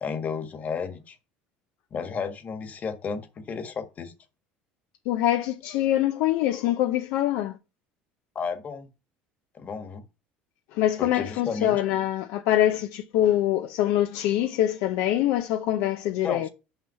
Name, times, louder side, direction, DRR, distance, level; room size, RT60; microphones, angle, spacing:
voice 1, 0.0-1.2 1.9-4.1 8.3-8.9 9.5-10.0 11.0-11.8 16.2-16.5, left 5 dB, 40° left, 1.5 m, -32 dB
voice 2, 5.1-7.6 10.7-16.5, left 12 dB, 75° left, 0.6 m, -24 dB
5.8 x 5.5 x 5.6 m
supercardioid pair, 100°, 4 cm